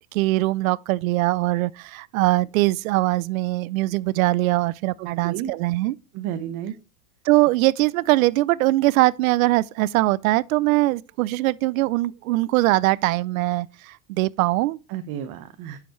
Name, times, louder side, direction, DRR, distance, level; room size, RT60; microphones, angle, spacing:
voice 1, 0.1-6.0 7.2-14.8, right 19 dB, 75° right, 0.6 m, -21 dB
voice 2, 5.0-5.5 6.1-6.7 14.9-15.8, right 10 dB, 50° right, 1.1 m, -32 dB
10.0 x 6.8 x 3.1 m
hypercardioid pair, 100°, 42 cm